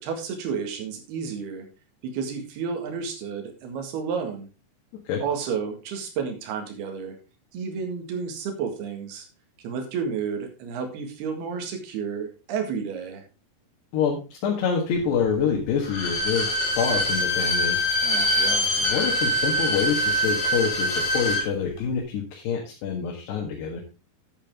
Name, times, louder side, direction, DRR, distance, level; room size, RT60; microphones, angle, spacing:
voice 1, 0.0-1.7 2.0-4.5 5.2-7.2 7.5-9.3 9.6-13.2 18.0-18.7, right 6 dB, 75° right, 4 dB, 3.8 m, -31 dB
voice 2, 13.9-16.5 16.8-17.9 18.8-23.8, left 6 dB, 90° left, -1 dB, 3.9 m, -26 dB
Bowed string instrument, 15.8-21.5 21.8-21.9, equal, 60° left, 4.7 m, -24 dB
10.0 x 8.8 x 3.6 m, 0.31 s
omnidirectional pair, 4.6 m